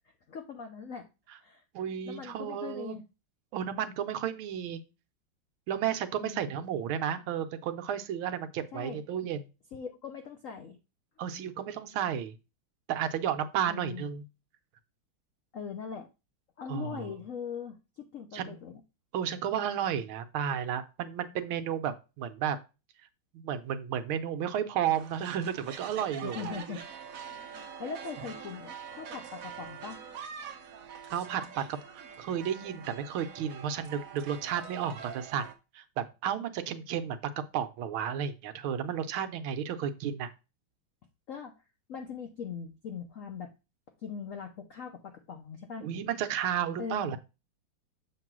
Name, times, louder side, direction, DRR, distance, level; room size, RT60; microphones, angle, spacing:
voice 1, 0.3-1.1 1.4-1.6 2.0-3.0 6.2-6.5 8.7-9.0 9.7-10.8 13.7-14.0 15.5-16.1 16.6-18.8 26.2-26.8 27.1-30.0 41.3-41.6 41.9-43.5 44.0-45.9 46.8-47.1, left 6 dB, 80° left, 4 dB, 0.7 m, -41 dB
voice 2, 1.7-3.0 3.5-4.8 5.7-9.5 11.2-12.3 12.9-14.2 16.7-17.1 18.3-18.6 19.1-22.6 23.3-26.4 31.0-35.5 35.7-40.3 45.8-47.2, right 9 dB, 75° right, 9 dB, 1.5 m, -33 dB
sound 1, 24.9-35.5, right 7 dB, 55° right, 1.0 m, -44 dB
7.3 x 3.0 x 6.0 m, 0.28 s
omnidirectional pair, 2.3 m